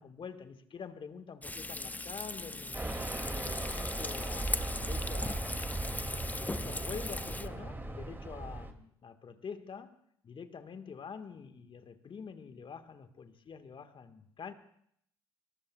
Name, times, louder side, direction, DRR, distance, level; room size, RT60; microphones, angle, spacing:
voice 1, 0.0-2.8 3.3-5.6 6.4-10.0 10.2-14.5, left 6 dB, 45° left, 9 dB, 1.6 m, -46 dB
Frying (food), 1.4-7.5, left 2 dB, 15° left, 0.9 m, -39 dB
Fixed-wing aircraft airplane, 2.7-8.7, right 2 dB, 15° right, 2.5 m, -38 dB
25.5 x 24.0 x 2.4 m, 0.68 s
hypercardioid pair, 45°, 12 cm